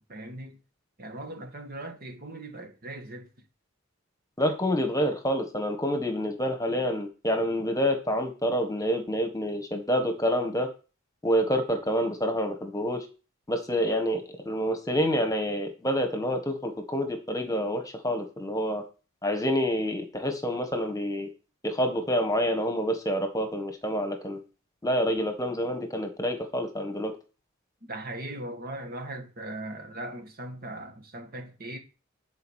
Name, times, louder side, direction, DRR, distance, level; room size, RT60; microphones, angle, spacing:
voice 1, 0.1-0.6 1.0-3.3 27.8-31.8, right 1 dB, 45° right, 2.0 m, -39 dB
voice 2, 4.4-10.7 11.2-13.0 13.5-18.8 19.2-21.3 21.6-24.4 24.8-27.1, equal, 15° left, 1.5 m, -27 dB
11.0 x 5.0 x 6.4 m
head